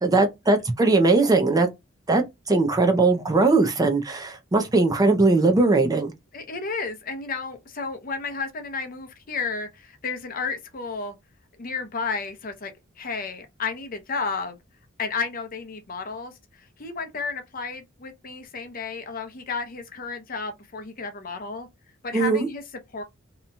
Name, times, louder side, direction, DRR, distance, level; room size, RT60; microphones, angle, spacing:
voice 1, 0.0-1.7 2.1-6.1 22.1-22.5, right 3 dB, 20° right, 0.4 m, -20 dB
voice 2, 6.3-11.2 11.6-12.7 13.0-14.6 15.0-16.3 16.8-21.7 22.0-22.6 22.9-23.0, left 4 dB, 45° left, 0.6 m, -32 dB
2.8 x 2.2 x 2.6 m
head